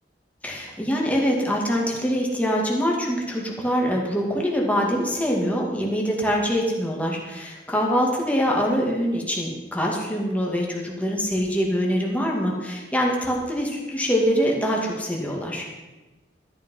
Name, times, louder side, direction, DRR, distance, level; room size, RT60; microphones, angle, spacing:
voice 1, 0.4-15.7, equal, 10° left, -2 dB, 2.3 m, -24 dB
13.5 x 10.5 x 5.5 m, 1.1 s
head